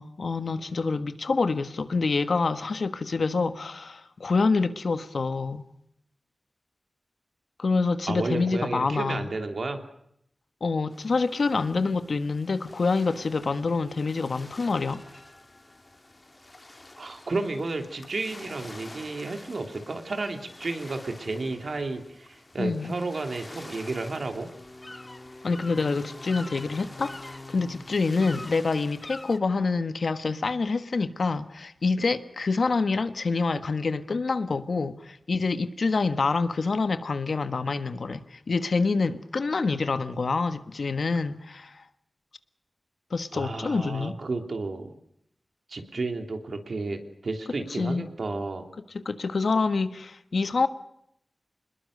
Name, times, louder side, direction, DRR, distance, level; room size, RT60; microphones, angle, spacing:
voice 1, 0.0-5.6 7.6-9.3 10.6-15.0 22.6-22.9 25.4-41.8 43.1-44.2 47.8-48.0 48.9-50.7, left 4 dB, 75° left, 1.5 m, -27 dB
voice 2, 8.1-9.8 17.0-24.5 43.3-45.0 45.7-48.7, right 3 dB, 75° right, 3.3 m, -32 dB
sound 1, 10.9-29.4, left 2 dB, 30° left, 1.9 m, -46 dB
26.5 x 21.0 x 6.7 m
wide cardioid pair, 65°, 0 cm